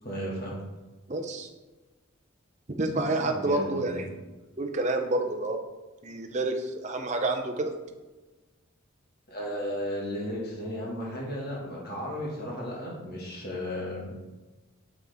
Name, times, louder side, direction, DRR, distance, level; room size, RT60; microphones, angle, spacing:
voice 1, 0.0-0.5 3.2-4.1 9.3-14.1, equal, 45° left, -4 dB, 2.0 m, -34 dB
voice 2, 1.1-1.5 2.8-4.1 4.6-5.6 6.0-7.7, right 2 dB, 35° right, 4 dB, 0.7 m, -28 dB
7.0 x 6.0 x 3.5 m, 1.2 s
head